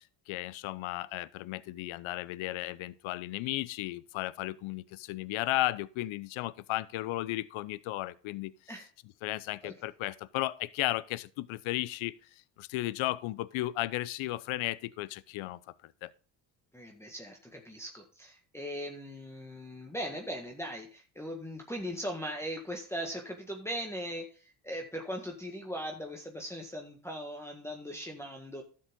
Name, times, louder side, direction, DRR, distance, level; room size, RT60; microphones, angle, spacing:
voice 1, 0.0-8.5 9.2-12.1 12.6-15.6 16.0-16.1, left 17 dB, 70° left, 0.8 m, -34 dB
voice 2, 16.7-28.6, equal, 5° left, 1.7 m, -39 dB
12.0 x 7.5 x 3.7 m
supercardioid pair, 75°, 49 cm